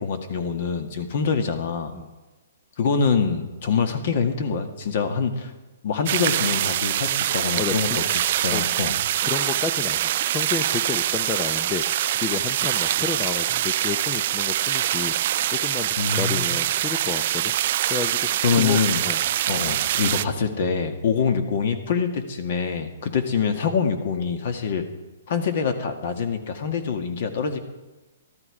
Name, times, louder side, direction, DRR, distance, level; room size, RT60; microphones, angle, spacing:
voice 1, 0.0-1.9 2.8-5.5 5.8-9.0 16.0-16.5 18.4-19.2 19.5-24.8 25.3-27.6, left 6 dB, 55° left, 6 dB, 1.7 m, -25 dB
sound 1, 6.1-20.3, right 12 dB, 50° right, 0.4 m, -24 dB
voice 2, 7.6-8.0 8.5-8.6 9.2-11.8 12.1-17.5 17.9-19.2, left 7 dB, 20° left, 8 dB, 0.6 m, -31 dB
13.0 x 13.0 x 4.9 m, 1.2 s
hypercardioid pair, 150°, 0 cm